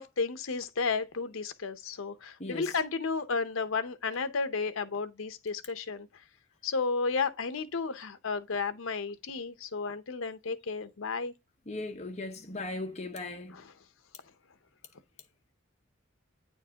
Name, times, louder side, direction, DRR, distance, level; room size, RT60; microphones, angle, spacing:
voice 1, 0.0-6.1 6.6-11.3 13.5-13.7, left 4 dB, 70° left, 0.7 m, -33 dB
voice 2, 2.4-2.7 11.7-13.5, left 2 dB, 30° left, 1.0 m, -38 dB
9.0 x 4.5 x 2.8 m
head